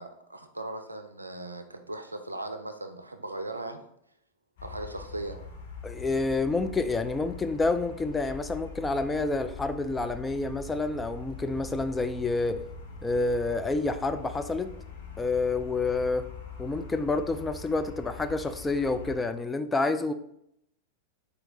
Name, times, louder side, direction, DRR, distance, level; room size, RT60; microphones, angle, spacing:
voice 1, 0.0-3.8 4.6-5.4, right 2 dB, 90° right, 7 dB, 0.4 m, -38 dB
sound 1, 4.6-19.2, left 5 dB, 60° left, 0.8 m, -43 dB
voice 2, 5.8-12.6 13.0-14.7 15.2-16.3 16.6-20.1, left 3 dB, 10° left, 9 dB, 0.3 m, -28 dB
4.4 x 2.8 x 4.0 m, 0.76 s
figure-of-eight pair, 90°, 0 cm